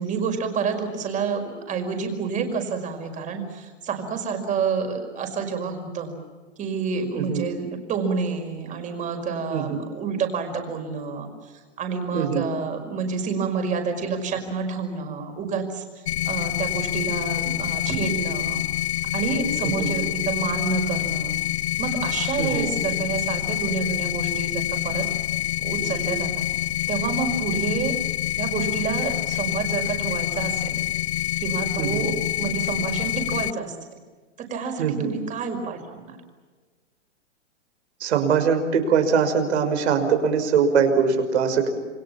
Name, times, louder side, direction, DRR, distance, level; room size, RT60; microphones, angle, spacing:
voice 1, 0.0-6.2 6.6-18.7 19.1-21.4 21.8-25.1 25.6-26.5 26.9-27.9 28.4-30.8 31.4-33.8 34.4-36.2, right 5 dB, 20° right, 5 dB, 5.3 m, -29 dB
voice 2, 7.1-7.4 9.5-9.8 12.1-12.4 19.8-19.9 22.4-22.7 31.8-32.0 34.8-35.1 38.0-41.7, right 6 dB, 65° right, 6 dB, 5.9 m, -22 dB
sound 1, 16.1-33.5, left 14 dB, 60° left, 0.7 m, -27 dB
28.0 x 25.5 x 7.3 m, 1.4 s
hypercardioid pair, 145°, 36 cm